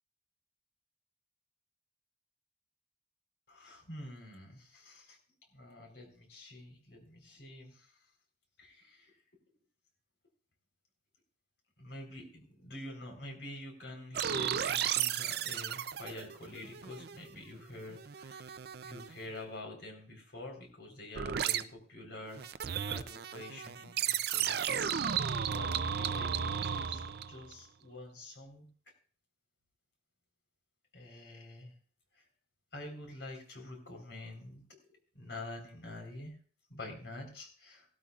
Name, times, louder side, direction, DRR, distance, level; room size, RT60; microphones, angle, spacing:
voice 1, 3.5-5.2 5.5-7.9 8.6-9.1 11.8-24.9 25.4-28.7 30.9-31.7 32.1-32.2 32.7-34.7 35.1-36.4 36.7-37.9, left 2 dB, 80° left, 2 dB, 4.1 m, -47 dB
sound 1, 14.1-17.4 17.7-19.2 21.1-21.6 22.3-27.5, right 8 dB, 65° right, 0.5 m, -34 dB
17.0 x 12.5 x 2.4 m, 0.41 s
head